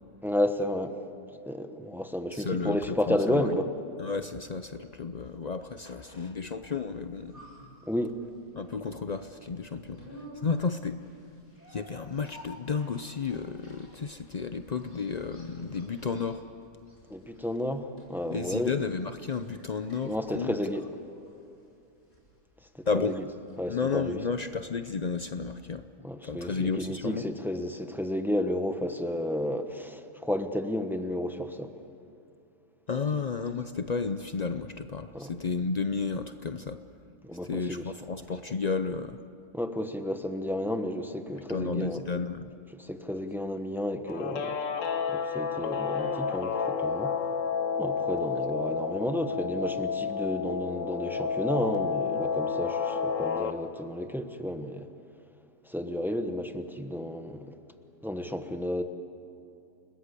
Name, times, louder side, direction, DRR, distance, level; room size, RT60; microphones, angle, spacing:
voice 1, 0.2-1.0 1.5-3.7 7.8-8.2 17.1-18.7 20.0-20.8 22.7-23.2 23.6-24.2 26.0-31.7 35.1-35.3 37.2-37.8 39.5-42.0 42.8-44.6 45.1-47.1 47.8-54.9 55.6-57.5 58.0-58.8, left 1 dB, ahead, 7 dB, 0.9 m, -32 dB
voice 2, 2.3-3.6 4.0-7.4 8.5-11.0 11.7-16.5 18.3-20.5 22.9-23.2 23.7-25.9 26.2-27.3 32.9-36.8 37.5-39.2 41.5-42.5, left 5 dB, 85° left, 9 dB, 0.3 m, -32 dB
sound 1, 6.8-24.8 25.1-25.2, equal, 30° left, 7.6 m, -53 dB
Guitar, 44.1-53.5, left 6 dB, 55° left, 1.4 m, -30 dB
29.5 x 20.0 x 8.3 m, 2.7 s
omnidirectional pair, 1.7 m